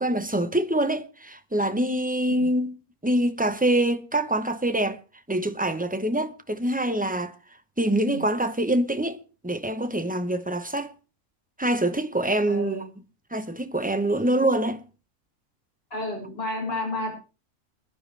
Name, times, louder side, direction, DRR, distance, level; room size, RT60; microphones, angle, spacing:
voice 1, 0.0-2.7 3.0-5.0 5.3-7.3 7.8-10.9 11.6-12.9 13.3-14.8, right 1 dB, 10° right, 0.5 m, -25 dB
voice 2, 12.5-12.8 15.9-17.2, left 1 dB, 40° left, 7.3 m, -31 dB
22.0 x 11.5 x 3.3 m
omnidirectional pair, 1.5 m